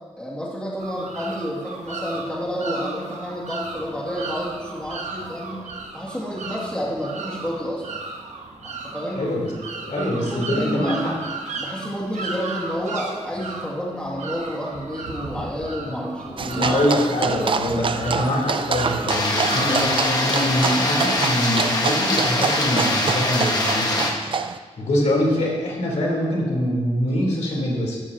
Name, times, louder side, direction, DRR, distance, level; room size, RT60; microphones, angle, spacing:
voice 1, 0.2-5.7 5.9-8.0 8.8-9.3 10.0-11.0 11.6-16.8, equal, 10° left, -5 dB, 2.3 m, -30 dB
sound 1, 0.8-19.9, right 4 dB, 80° right, 1.2 m, -35 dB
voice 2, 9.1-9.5 9.8-11.1 15.8-16.1 16.4-24.1 24.8-28.0, left 1 dB, 75° left, -3 dB, 3.6 m, -24 dB
sound 2, 16.4-24.6, right 5 dB, 45° right, 0.4 m, -27 dB
sound 3, 19.1-24.1, left 1 dB, 35° left, 1.5 m, -23 dB
13.5 x 13.0 x 2.9 m, 1.5 s
wide cardioid pair, 160°, 12 cm